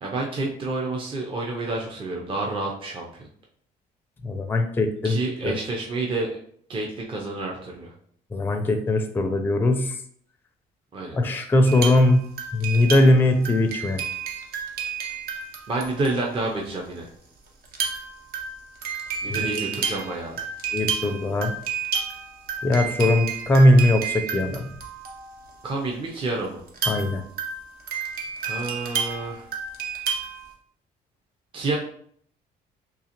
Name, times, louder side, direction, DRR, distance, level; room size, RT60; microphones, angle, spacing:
voice 1, 0.0-3.3 5.0-6.4 6.7-7.9 10.9-11.2 15.7-17.1 19.2-20.5 25.6-26.6 28.4-29.5 31.5-31.8, right 2 dB, 30° right, -1 dB, 0.6 m, -29 dB
voice 2, 4.2-5.2 5.4-5.5 8.3-10.0 11.1-12.2 12.5-14.0 19.3-19.6 20.7-21.5 22.6-24.7 26.9-27.2, left 1 dB, 10° left, 6 dB, 0.4 m, -20 dB
sound 1, 11.7-16.4 17.6-25.5 26.7-30.5, right 6 dB, 65° right, 0.8 m, -31 dB
3.8 x 2.8 x 2.9 m, 0.62 s
cardioid pair, 110°, 17 cm